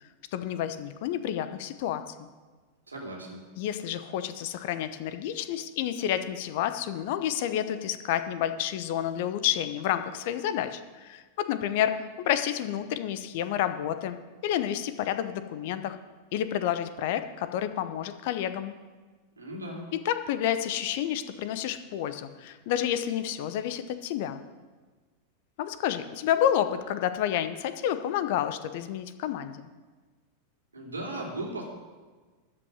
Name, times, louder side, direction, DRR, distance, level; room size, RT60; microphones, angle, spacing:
voice 1, 0.3-2.3 3.6-11.9 12.2-16.0 16.3-18.8 20.0-24.4 25.6-29.7, left 10 dB, 50° left, 11 dB, 0.8 m, -30 dB
voice 2, 2.9-3.5 19.4-19.9 30.7-31.6, right 1 dB, 75° right, -1 dB, 2.9 m, -37 dB
13.5 x 5.6 x 9.0 m, 1.4 s
figure-of-eight pair, 90°, 0 cm